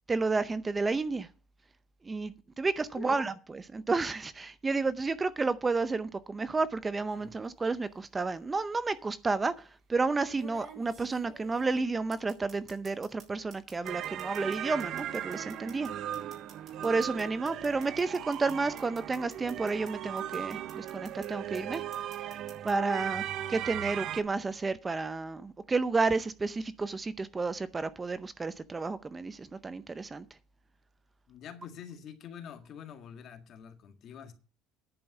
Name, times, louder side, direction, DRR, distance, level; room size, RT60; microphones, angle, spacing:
voice 1, 0.1-1.3 2.0-3.3 3.7-15.9 16.8-21.8 22.6-23.2 23.5-30.2, right 3 dB, 20° right, 0.6 m, -31 dB
voice 2, 2.9-3.2 31.3-34.3, left 8 dB, 50° left, 1.8 m, -46 dB
sound 1, 7.1-7.5 8.7-8.8 10.3-13.3 13.5-19.9 20.2-21.3 21.5-22.7, right 5 dB, 40° right, 5.1 m, -52 dB
sound 2, 13.8-24.2, right 11 dB, 60° right, 0.7 m, -38 dB
10.5 x 5.4 x 8.0 m
cardioid pair, 120°, 0 cm